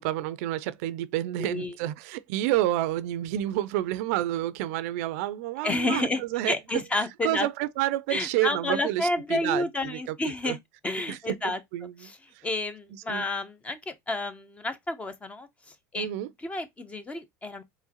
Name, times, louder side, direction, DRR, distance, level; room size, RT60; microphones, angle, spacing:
voice 1, 0.0-6.8 7.2-10.6 11.1-11.4 11.7-12.1 13.1-13.2 16.0-16.3, right 14 dB, 75° right, 0.4 m, -29 dB
voice 2, 1.4-1.7 5.6-7.5 8.1-10.6 10.8-11.6 12.0-12.2 12.4-16.1 16.4-17.6, left 2 dB, 15° left, 0.7 m, -30 dB
4.7 x 3.1 x 2.8 m
supercardioid pair, 120°, 8 cm